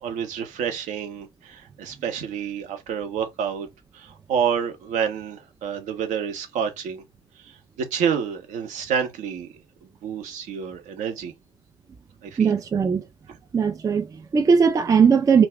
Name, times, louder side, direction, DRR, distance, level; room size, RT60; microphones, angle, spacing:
voice 1, 0.0-3.7 3.9-7.0 7.5-7.6 7.9-9.5 10.0-11.3 12.2-12.5, right 7 dB, 60° right, 0.7 m, -28 dB
voice 2, 12.4-13.0 13.5-15.5, right 6 dB, 25° right, 0.4 m, -19 dB
2.3 x 2.0 x 3.5 m
figure-of-eight pair, 50°, 15 cm